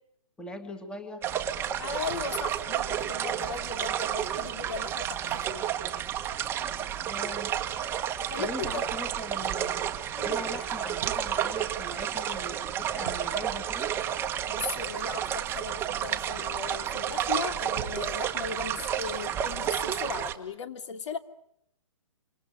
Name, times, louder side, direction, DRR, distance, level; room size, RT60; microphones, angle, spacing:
voice 1, 0.4-1.2 7.0-7.5 8.1-9.8 10.2-13.9, left 1 dB, 5° left, 8 dB, 2.2 m, -41 dB
sound 1, 1.2-20.3, right 10 dB, 15° right, 1.5 m, -31 dB
voice 2, 1.8-5.7 8.3-8.9 10.2-10.5 14.5-21.2, left 5 dB, 60° left, 9 dB, 2.9 m, -37 dB
sound 2, 2.1-2.7 5.3-5.9 8.3-9.3 10.9-11.6 12.0-12.1 12.5-12.6 13.0-13.7 17.7-18.4 19.5-19.8, right 12 dB, 40° right, 1.5 m, -45 dB
28.0 x 27.0 x 6.5 m, 0.72 s
hypercardioid pair, 160°, 17 cm